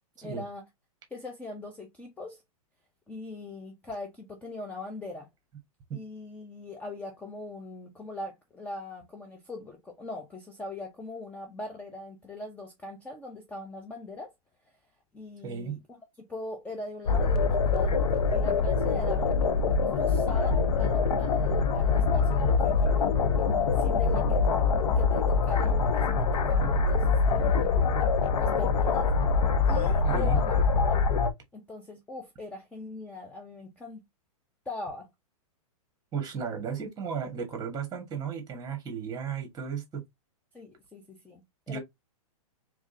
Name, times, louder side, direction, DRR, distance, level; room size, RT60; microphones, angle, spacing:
voice 1, 0.2-0.6 1.1-2.4 3.1-5.3 5.9-14.3 15.1-15.8 16.3-19.3 19.9-23.1 23.8-24.4 25.0-27.8 28.4-29.1 29.7-31.0 31.5-34.0 34.7-35.1 40.5-41.8, left 2 dB, 5° left, 0.6 m, -41 dB
voice 2, 15.4-15.8 30.0-30.4 36.1-40.0 41.7-41.8, right 6 dB, 20° right, 1.5 m, -34 dB
sound 1, 17.1-31.3, left 4 dB, 80° left, 0.7 m, -24 dB
3.5 x 3.2 x 2.7 m
hypercardioid pair, 135°, 19 cm